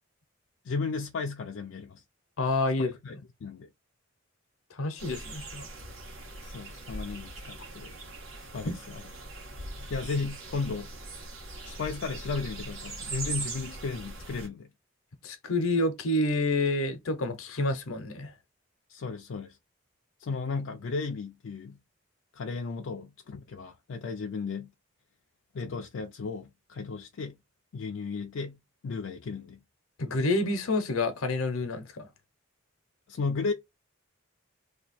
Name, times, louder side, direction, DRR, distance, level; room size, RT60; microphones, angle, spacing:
voice 1, 0.6-2.0 2.8-3.1 3.4-3.7 6.4-7.9 8.5-9.0 9.9-10.9 11.6-14.7 18.9-19.6 20.2-21.8 22.3-24.7 25.5-27.4 27.7-29.6 33.1-33.5, left 4 dB, 65° left, 0.4 m, -35 dB
voice 2, 2.4-3.2 4.7-5.7 15.2-18.3 30.0-32.1, left 2 dB, 85° left, 0.7 m, -28 dB
sound 1, 5.0-14.5, right 2 dB, 90° right, 1.4 m, -40 dB
2.8 x 2.3 x 4.1 m
head